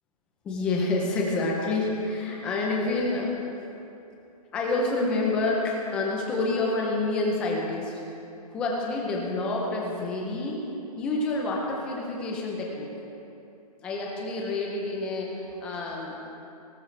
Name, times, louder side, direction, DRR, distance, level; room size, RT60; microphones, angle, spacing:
voice 1, 0.4-3.4 4.5-8.0 8.5-10.6 11.0-12.9 13.8-16.1, left 2 dB, 5° left, -2 dB, 0.5 m, -28 dB
18.0 x 14.0 x 3.3 m, 2.8 s
hypercardioid pair, 180°, 21 cm